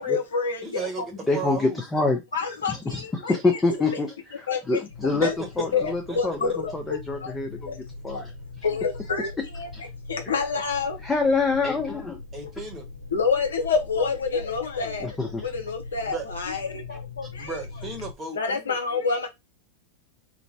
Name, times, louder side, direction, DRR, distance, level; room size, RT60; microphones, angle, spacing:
voice 1, 0.0-1.1 2.3-3.6 4.5-4.8 5.2-5.3 5.7-7.3 7.7-7.8 8.1-8.2 8.6-9.7 10.1-11.0 13.1-15.2 15.4-17.6 18.3-19.3, left 5 dB, 70° left, 0.6 m, -28 dB
voice 2, 0.6-1.8 5.4-5.5 5.7-5.8 6.1-6.2 12.3-12.9 16.0-16.3 17.4-18.4, right 4 dB, 20° right, 1.0 m, -34 dB
voice 3, 1.3-2.2 2.7-5.3 5.6-7.7 8.0-8.3 9.7-9.9 10.3-10.4 11.0-12.2 15.0-15.5, left 3 dB, 15° left, 0.5 m, -26 dB
sound 1, 4.9-18.1, left 3 dB, 85° right, 0.6 m, -41 dB
2.5 x 2.1 x 3.1 m
figure-of-eight pair, 90°, 0 cm